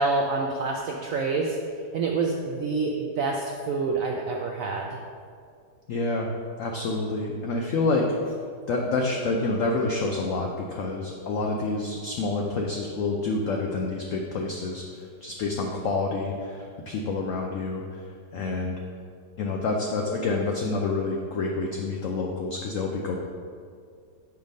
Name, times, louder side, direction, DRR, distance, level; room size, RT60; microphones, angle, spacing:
voice 1, 0.0-1.6 1.9-5.0, right 3 dB, 80° right, 1 dB, 0.7 m, -27 dB
voice 2, 5.9-6.3 6.6-8.3 8.7-18.0 18.3-18.8 19.4-23.2, left 3 dB, 80° left, 0 dB, 0.7 m, -28 dB
6.6 x 3.5 x 5.1 m, 2.2 s
omnidirectional pair, 1.9 m